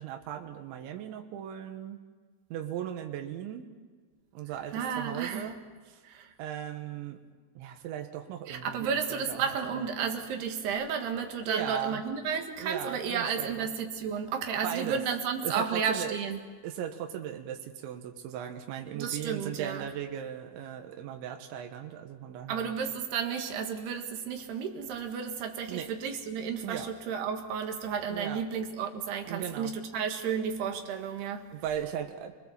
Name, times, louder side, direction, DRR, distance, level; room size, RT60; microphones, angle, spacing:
voice 1, 0.0-2.0 2.5-3.7 4.3-6.0 6.4-7.2 7.6-9.9 11.5-12.0 12.6-13.7 14.6-15.0 15.4-16.2 16.6-22.7 25.7-25.9 26.6-26.9 28.1-28.4 29.3-29.7 31.5-32.3, right 10 dB, 85° right, 4 dB, 3.6 m, -37 dB
voice 2, 4.7-5.5 6.0-6.3 8.5-16.4 18.9-19.9 22.5-31.5, right 6 dB, 65° right, 4 dB, 3.7 m, -32 dB
29.5 x 21.0 x 7.3 m, 1.5 s
omnidirectional pair, 5.2 m